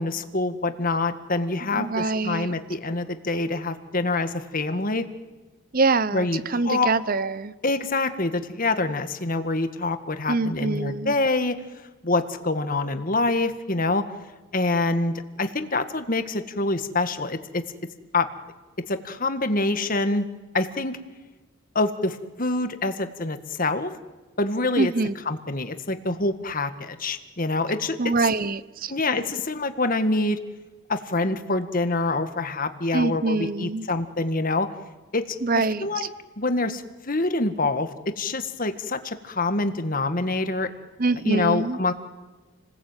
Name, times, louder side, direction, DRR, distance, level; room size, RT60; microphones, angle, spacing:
voice 1, 0.0-5.1 6.1-6.4 6.7-6.9 7.6-11.6 12.0-14.0 14.5-17.6 18.1-18.3 18.9-20.3 20.5-21.0 21.8-23.9 24.4-24.9 25.3-28.1 28.9-30.4 30.9-34.7 35.1-35.3 35.5-36.1 36.4-40.7 41.2-41.9, left 2 dB, 40° left, 9 dB, 1.8 m, -26 dB
voice 2, 1.7-2.5 5.7-7.5 10.3-11.1 24.8-25.1 28.0-28.9 32.9-33.9 35.4-36.1 41.0-41.8, right 3 dB, 40° right, 16 dB, 0.9 m, -25 dB
29.5 x 20.5 x 9.1 m, 1.2 s
head